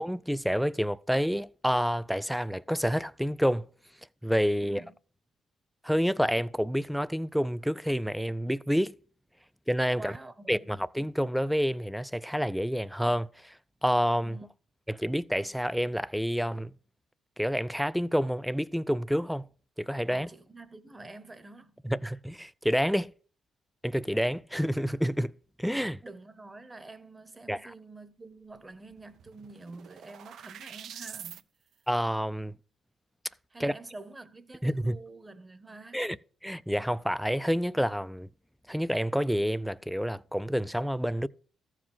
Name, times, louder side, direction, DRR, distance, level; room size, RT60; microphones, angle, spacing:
voice 1, 0.0-3.7 4.2-4.8 5.8-8.9 9.7-10.1 10.5-13.5 13.8-14.4 14.9-16.7 17.4-19.5 19.8-20.3 21.8-23.1 23.8-25.3 25.6-26.0 27.5-27.6 31.9-32.6 33.6-33.7 34.6-35.0 35.9-36.2 36.4-38.3 38.7-41.3, equal, ahead, 0.4 m, -28 dB
voice 2, 4.6-4.9 9.9-10.8 14.2-14.5 20.1-21.8 26.0-31.4 33.5-36.0, right 2 dB, 20° right, 0.9 m, -47 dB
sound 1, 28.6-28.7 28.9-31.4, right 9 dB, 70° right, 0.4 m, -45 dB
14.0 x 5.0 x 5.4 m
cardioid pair, 90°, 0 cm